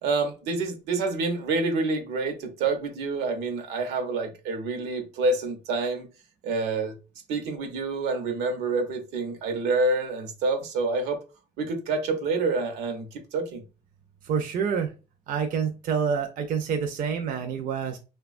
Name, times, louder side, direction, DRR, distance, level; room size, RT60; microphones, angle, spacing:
voice 1, 0.0-6.1 6.4-6.9 7.3-11.2 11.6-13.6, right 3 dB, 85° right, 0.7 m, -27 dB
voice 2, 14.2-14.9 15.3-18.0, right 6 dB, 55° right, 0.5 m, -27 dB
3.0 x 2.2 x 2.4 m
cardioid pair, 110°, 17 cm